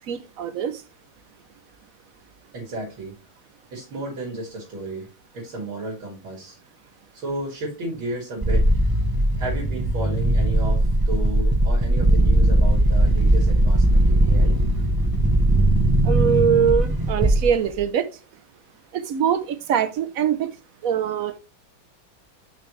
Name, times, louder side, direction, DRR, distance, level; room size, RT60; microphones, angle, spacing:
voice 1, 0.1-0.8 16.0-18.1 18.9-20.5 20.8-21.4, right 8 dB, 65° right, 0.8 m, -23 dB
voice 2, 2.5-3.1 3.7-5.1 5.3-6.6 7.1-8.7 9.4-14.6, right 1 dB, 85° right, 3.3 m, -33 dB
sound 1, 8.4-17.8, right 1 dB, 30° right, 0.4 m, -19 dB
6.2 x 5.9 x 3.2 m
omnidirectional pair, 2.2 m